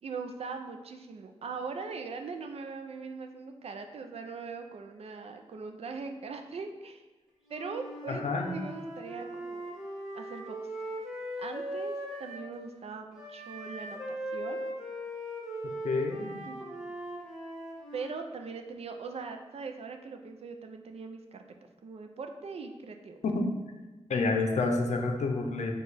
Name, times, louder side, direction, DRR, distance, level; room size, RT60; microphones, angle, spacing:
voice 1, 0.0-7.0 7.5-8.2 8.5-9.7 10.1-10.6 11.4-14.7 16.5-16.6 17.9-21.4 21.8-23.2, right 4 dB, 60° right, 5 dB, 0.4 m, -41 dB
Wind instrument woodwind instrument, 7.4-12.5 13.2-18.1, right 1 dB, 5° right, 1.0 m, -39 dB
voice 2, 8.1-8.5 15.6-16.3 23.2-23.5 24.1-25.7, left 3 dB, 80° left, 3 dB, 0.6 m, -29 dB
4.7 x 2.4 x 4.0 m, 1.1 s
wide cardioid pair, 115°, 12 cm